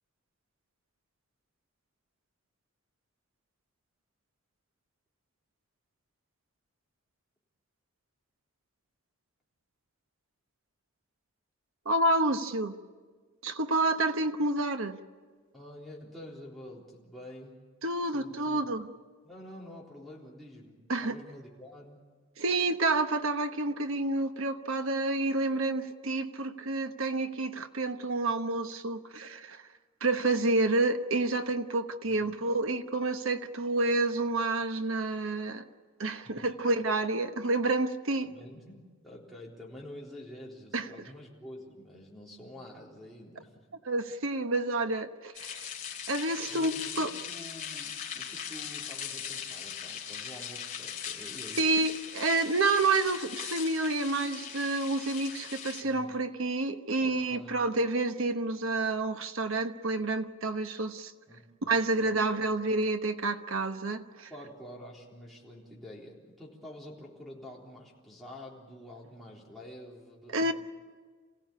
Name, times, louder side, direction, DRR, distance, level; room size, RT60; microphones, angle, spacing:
voice 1, 11.8-12.7 13.4-15.0 17.8-18.9 20.9-21.2 22.4-29.6 30.0-35.6 36.0-38.3 40.7-40.9 43.8-45.7 46.1-46.7 47.0-47.1 51.6-61.1 61.7-64.3 70.3-70.5, right 2 dB, 70° right, 1.1 m, -29 dB
voice 2, 15.5-17.6 18.1-18.6 19.2-22.0 32.1-32.4 36.2-36.5 38.2-43.7 46.4-51.7 55.8-56.2 57.0-57.6 61.3-62.1 64.3-70.5, left 1 dB, ahead, 3.8 m, -48 dB
sound 1, 45.3-55.8, left 8 dB, 35° left, 3.0 m, -40 dB
27.5 x 16.5 x 8.7 m
head